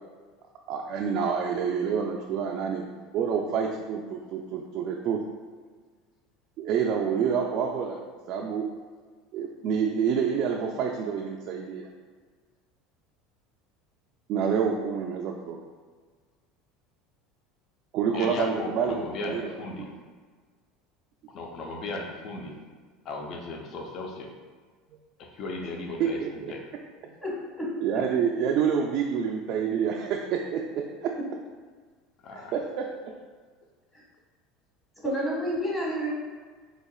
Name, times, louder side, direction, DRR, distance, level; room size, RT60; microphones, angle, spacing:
voice 1, 0.7-5.2 6.6-8.0 8.3-8.7 9.3-11.9 14.3-15.6 17.9-19.0 19.2-19.9 26.0-26.3 27.8-31.1 32.3-32.9, right 7 dB, 55° right, 0 dB, 0.3 m, -28 dB
voice 2, 18.1-20.0 21.3-22.6 23.0-24.3 25.2-26.2 26.5-26.6 32.2-32.5, left 2 dB, 50° left, 1 dB, 0.6 m, -36 dB
voice 3, 27.2-27.7 33.9-34.0 35.0-36.1, equal, 10° left, -5 dB, 1.3 m, -29 dB
4.0 x 2.8 x 2.3 m, 1.5 s
supercardioid pair, 105°, 0 cm